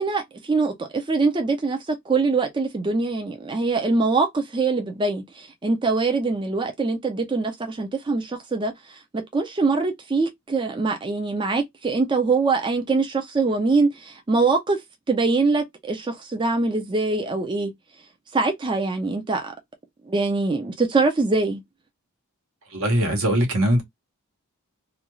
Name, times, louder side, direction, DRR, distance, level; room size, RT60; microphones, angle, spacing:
voice 1, 0.0-14.8 15.1-17.7 18.3-19.5 20.1-21.6, right 3 dB, 20° right, 0.4 m, -23 dB
voice 2, 22.7-23.8, right 1 dB, 70° right, 1.1 m, -21 dB
2.5 x 2.3 x 3.0 m
head